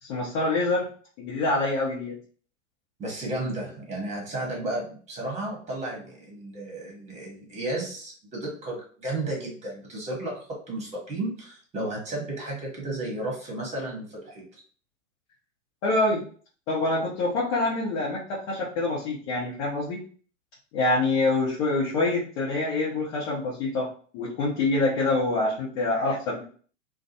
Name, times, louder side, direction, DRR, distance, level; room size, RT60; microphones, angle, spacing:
voice 1, 0.0-0.9 1.2-2.2 15.8-16.2 16.7-20.0 20.7-26.4, left 2 dB, 40° left, -8 dB, 1.0 m, -26 dB
voice 2, 3.0-14.6, right 2 dB, 15° right, -1 dB, 1.2 m, -33 dB
2.4 x 2.3 x 2.8 m, 0.43 s
figure-of-eight pair, 100°, 39 cm